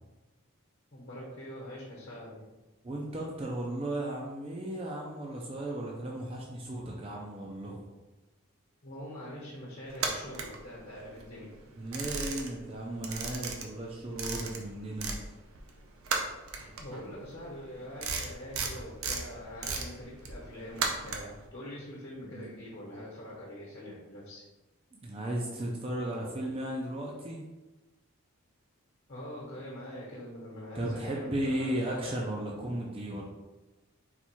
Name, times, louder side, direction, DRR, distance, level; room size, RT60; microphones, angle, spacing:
voice 1, 0.9-2.5 8.8-11.6 16.8-24.4 29.1-31.7 32.0-32.1, equal, 50° left, -6 dB, 1.1 m, -44 dB
voice 2, 2.8-7.8 11.8-15.2 22.2-22.6 24.9-27.4 30.7-33.2, right 1 dB, 25° right, -2 dB, 0.4 m, -35 dB
sound 1, 9.9-11.2 11.6-12.7 13.0-15.2 15.5-21.4, right 4 dB, 70° right, 0.6 m, -35 dB
4.1 x 2.3 x 4.4 m, 1.1 s
head